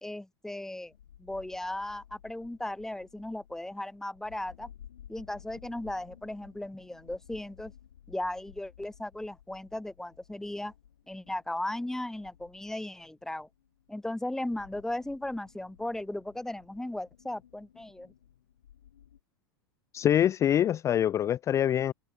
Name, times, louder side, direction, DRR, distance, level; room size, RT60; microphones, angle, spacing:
voice 1, 0.0-0.9 1.2-4.7 5.1-7.7 8.1-10.7 11.1-13.5 13.9-18.1, left 1 dB, 5° left, 0.9 m, -36 dB
sound 1, 0.9-19.2, left 10 dB, 70° left, 5.0 m, -56 dB
voice 2, 19.9-21.9, left 10 dB, 25° left, 0.4 m, -25 dB
figure-of-eight pair, 90°, 12 cm